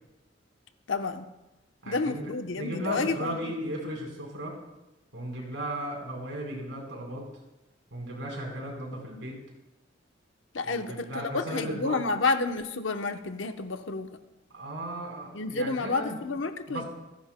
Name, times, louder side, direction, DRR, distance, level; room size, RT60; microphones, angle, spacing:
voice 1, 0.9-1.3 1.9-3.5 10.5-14.1 15.3-16.8, left 3 dB, 80° left, 7 dB, 0.9 m, -30 dB
voice 2, 1.8-2.3 2.6-4.6 5.1-7.3 7.9-9.4 10.6-12.0 14.5-16.2 16.7-16.8, right 1 dB, 75° right, -1 dB, 4.2 m, -36 dB
26.5 x 10.5 x 2.2 m, 0.98 s
head